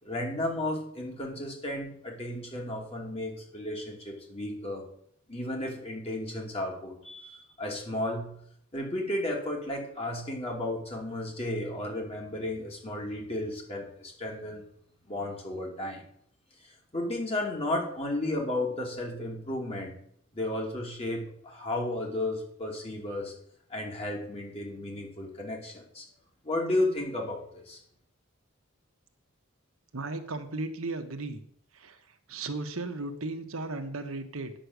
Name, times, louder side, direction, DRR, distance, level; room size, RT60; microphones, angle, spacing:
voice 1, 0.0-4.8 5.3-8.4 8.7-14.6 15.1-16.0 16.6-19.9 20.3-23.3 23.7-26.1 26.4-27.8, left 1 dB, 25° left, 0 dB, 2.9 m, -33 dB
voice 2, 29.9-31.4 31.7-34.5, right 2 dB, 75° right, 6 dB, 1.3 m, -36 dB
10.0 x 6.7 x 8.0 m, 0.67 s
head